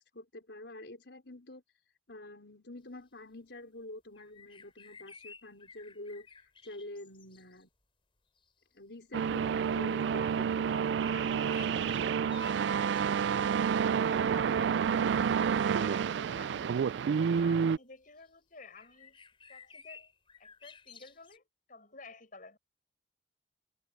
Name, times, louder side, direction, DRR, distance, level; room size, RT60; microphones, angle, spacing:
voice 1, 0.1-1.6 2.1-6.3 6.6-7.7 8.7-10.4, left 1 dB, 75° left, 4.7 m, -47 dB
sound 1, 4.1-7.6 8.4-8.5 10.9-13.1 15.2-15.6 16.3-16.4 18.2-18.3 18.8-21.4, left 5 dB, 30° left, 4.5 m, -54 dB
sound 2, 9.1-17.8, right 7 dB, 75° right, 0.3 m, -29 dB
voice 2, 10.0-13.3 13.6-15.2 15.5-17.0 17.3-19.2 19.5-20.1 20.4-22.6, left 3 dB, 50° left, 6.9 m, -53 dB
head